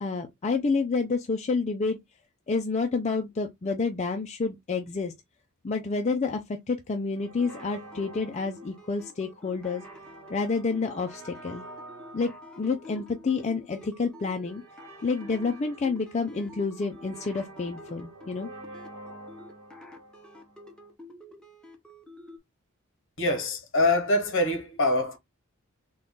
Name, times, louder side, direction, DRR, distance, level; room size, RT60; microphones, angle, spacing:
voice 1, 0.0-2.0 2.5-5.1 5.6-9.8 10.3-11.6 12.1-14.6 15.0-18.5, left 4 dB, 30° left, 0.4 m, -29 dB
sound 1, 7.1-20.9, right 1 dB, 65° right, 1.0 m, -48 dB
sound 2, 7.4-22.4, left 1 dB, 5° left, 0.7 m, -49 dB
voice 2, 23.2-25.2, left 2 dB, 60° left, 1.0 m, -24 dB
3.9 x 2.3 x 3.6 m
head